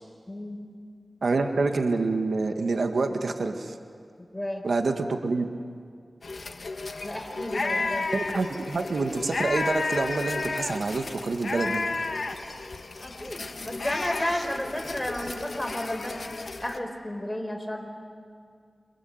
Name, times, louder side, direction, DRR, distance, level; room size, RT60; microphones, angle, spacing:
voice 1, 0.3-0.6 4.3-4.6 7.0-8.1 13.0-16.2 16.6-17.9, left 1 dB, 15° left, 4 dB, 4.8 m, -32 dB
voice 2, 1.2-3.7 4.6-5.5 8.1-11.8, right 3 dB, 85° right, 5 dB, 1.8 m, -27 dB
sound 1, 6.2-16.8, left 3 dB, 75° left, 1.6 m, -33 dB
28.5 x 26.0 x 8.0 m, 2.2 s
wide cardioid pair, 60°, 0 cm